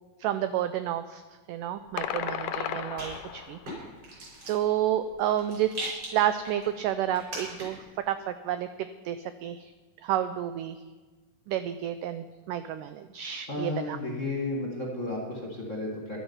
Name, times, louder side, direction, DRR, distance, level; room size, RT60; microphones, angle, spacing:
voice 1, 0.2-1.2 1.5-3.6 4.5-8.7 9.1-9.7 10.0-10.8 11.5-14.0, right 11 dB, 85° right, 11 dB, 1.8 m, -30 dB
Rattle, 1.8-7.9, right 1 dB, 40° right, 6.4 m, -42 dB
sound 1, 2.0-3.7, left 10 dB, 75° left, 2.1 m, -34 dB
voice 2, 13.5-16.2, left 2 dB, 25° left, -2 dB, 1.7 m, -33 dB
14.5 x 12.0 x 5.6 m, 1.3 s
omnidirectional pair, 4.3 m